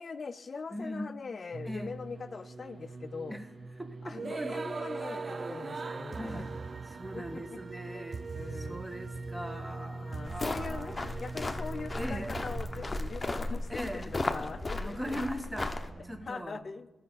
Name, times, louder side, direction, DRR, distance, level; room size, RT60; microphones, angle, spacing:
voice 1, 0.0-3.4 4.0-6.5 7.1-7.4 7.9-8.1 8.3-8.8 10.0-15.2 16.0-16.9, left 4 dB, 55° left, 12 dB, 0.4 m, -42 dB
voice 2, 0.7-1.2 1.7-1.9 3.3-3.4 3.8-4.5 5.3-5.6 6.2-6.5 6.9-8.2 8.6-11.1 11.9-12.4 13.7-14.1 14.8-15.8 16.0-16.6, equal, 15° right, 7 dB, 1.1 m, -40 dB
sound 1, 1.5-16.3, right 4 dB, 50° right, 0.3 m, -41 dB
sound 2, 10.2-15.9, left 2 dB, 30° left, 0.8 m, -36 dB
12.5 x 5.6 x 4.0 m, 1.1 s
cardioid pair, 55°, 0 cm